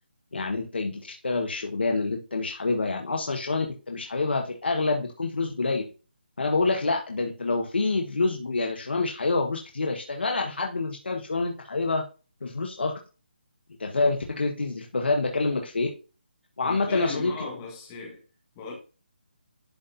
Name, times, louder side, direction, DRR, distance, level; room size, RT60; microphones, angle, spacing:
voice 1, 0.3-5.8 6.4-12.0 12.4-12.9 13.8-15.9 16.6-17.3, left 3 dB, 70° left, 1.5 m, -27 dB
voice 2, 16.6-18.2 18.5-18.7, left 4 dB, 10° left, 1.5 m, -37 dB
12.0 x 4.2 x 2.7 m
hypercardioid pair, 180°, 6 cm